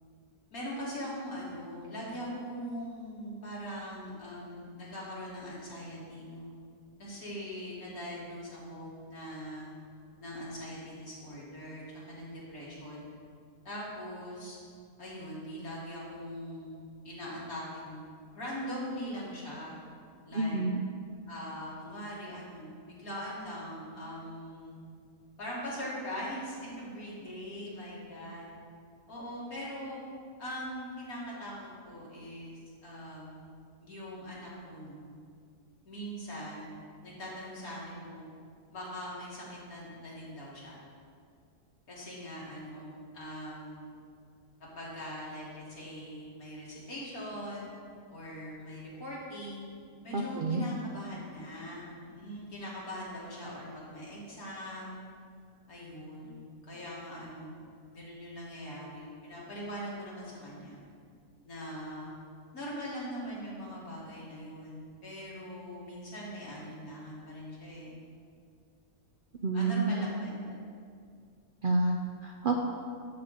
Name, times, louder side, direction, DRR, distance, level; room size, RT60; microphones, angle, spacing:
voice 1, 0.5-6.5 7.0-9.7 10.2-13.1 13.6-14.6 15.0-18.0 18.3-19.7 20.3-20.6 21.3-24.8 25.4-28.5 29.1-30.0 30.4-33.5 33.8-35.1 35.8-36.7 37.0-38.3 38.7-40.8 41.9-43.9 44.8-47.7 48.1-49.7 50.0-55.0 55.7-57.5 57.9-60.8 61.4-62.1 62.5-67.9 69.5-70.5, equal, 80° left, -6 dB, 2.8 m, -41 dB
voice 2, 20.3-20.8 50.1-50.7 69.4-70.1 71.6-72.0 72.2-72.6, right 3 dB, 55° right, 2 dB, 0.6 m, -28 dB
11.5 x 3.9 x 6.6 m, 2.2 s
omnidirectional pair, 1.5 m